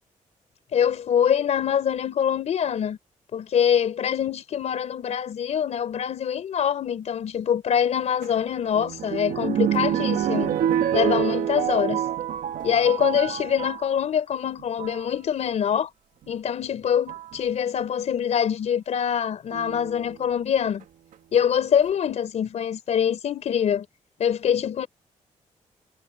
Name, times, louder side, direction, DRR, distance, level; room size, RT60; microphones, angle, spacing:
voice 1, 0.7-3.0 3.3-10.6 10.9-12.1 12.6-15.9 16.3-20.8 21.3-23.9 24.2-24.9, left 8 dB, 60° left, 4.0 m, -24 dB
sound 1, 8.2-13.9 14.6-15.0 16.3-16.4 17.1-17.4 19.5-20.1 20.8-20.9 21.1-21.2, right 10 dB, 80° right, 1.8 m, -27 dB
cardioid pair, 140°, 13 cm